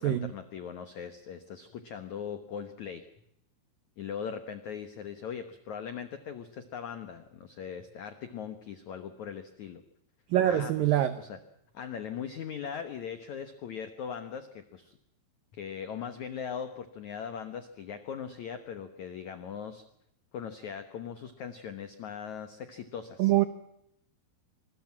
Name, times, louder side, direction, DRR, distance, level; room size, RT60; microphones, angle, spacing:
voice 1, 0.0-3.0 4.0-9.8 10.4-10.7 11.2-11.4 11.7-15.0 15.5-19.8 20.3-23.3, left 7 dB, 90° left, 9 dB, 1.6 m, -40 dB
voice 2, 10.3-11.2 23.2-23.5, right 12 dB, 85° right, 11 dB, 2.0 m, -24 dB
26.5 x 21.5 x 5.9 m, 0.78 s
omnidirectional pair, 5.4 m